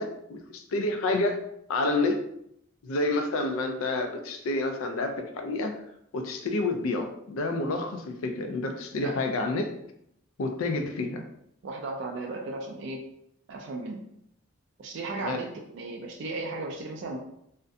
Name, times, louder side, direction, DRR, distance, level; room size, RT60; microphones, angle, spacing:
voice 1, 0.0-1.4 1.7-2.2 2.8-5.8 6.1-9.7 10.4-11.2 15.2-15.4, left 2 dB, 80° left, 5 dB, 0.4 m, -29 dB
voice 2, 11.6-13.1 13.5-14.0 14.8-17.2, right 2 dB, 60° right, 0 dB, 0.3 m, -35 dB
2.4 x 2.1 x 2.5 m, 0.74 s
head